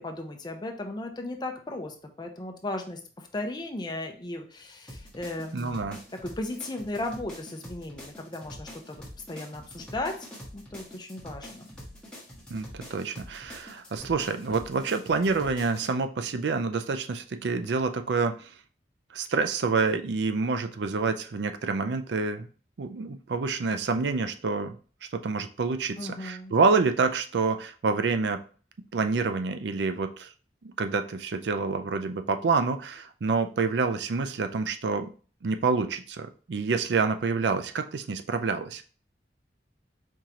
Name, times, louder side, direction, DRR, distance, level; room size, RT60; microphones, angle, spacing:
voice 1, 0.0-5.9 6.2-10.1 10.5-11.8 26.0-26.5, left 2 dB, 25° left, 4 dB, 0.7 m, -36 dB
sound 1, 4.9-15.9, equal, 5° left, 1.4 m, -45 dB
voice 2, 5.5-6.0 12.5-18.5 19.1-22.5 22.8-24.8 25.1-28.4 28.9-30.3 30.6-35.1 35.4-39.0, right 4 dB, 80° right, 9 dB, 0.5 m, -27 dB
4.6 x 3.7 x 2.9 m, 0.39 s
head